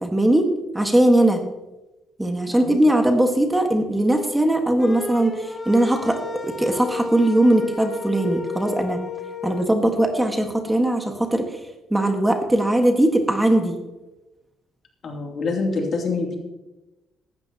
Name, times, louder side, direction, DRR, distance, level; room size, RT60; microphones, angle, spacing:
voice 1, 0.0-1.4 2.2-9.0 9.4-11.5 11.9-13.8, right 1 dB, 10° right, 4 dB, 1.6 m, -20 dB
sound 1, 4.8-9.6, left 3 dB, 30° left, 2.3 m, -32 dB
voice 2, 15.0-16.3, left 3 dB, 55° left, 1 dB, 3.0 m, -26 dB
15.0 x 12.0 x 3.0 m, 1.0 s
cardioid pair, 90°, 0 cm